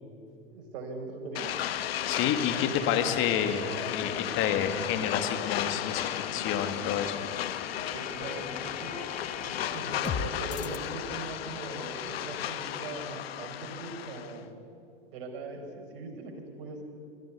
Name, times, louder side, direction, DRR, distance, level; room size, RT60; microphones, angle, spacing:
voice 1, 0.5-1.6 7.8-9.0 9.4-14.5 15.1-16.8, right 3 dB, 60° right, 2 dB, 4.7 m, -40 dB
sound 1, 1.4-14.4, left 11 dB, 75° left, 1.1 m, -34 dB
voice 2, 2.1-7.2, left 8 dB, 40° left, 7 dB, 2.1 m, -29 dB
sound 2, 3.5-10.8, left 6 dB, 25° left, 1.2 m, -41 dB
23.5 x 14.5 x 8.4 m, 2.5 s
hypercardioid pair, 105°, 31 cm